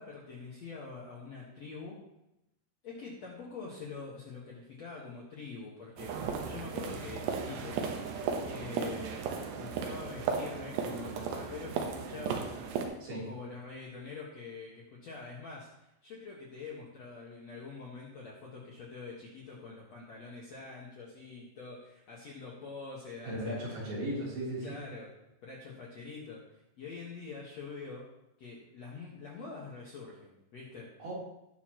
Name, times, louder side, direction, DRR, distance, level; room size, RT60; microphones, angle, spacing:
voice 1, 0.0-2.0 2.8-7.8 8.4-23.8 24.6-25.1 25.4-28.1 28.4-30.9, left 4 dB, 55° left, -4 dB, 2.0 m, -45 dB
sound 1, 6.0-12.9, right 6 dB, 80° right, 3.1 m, -35 dB
voice 2, 23.2-24.8 31.0-31.1, right 1 dB, 60° right, -6 dB, 5.3 m, -36 dB
18.5 x 6.9 x 3.0 m, 0.88 s
omnidirectional pair, 5.0 m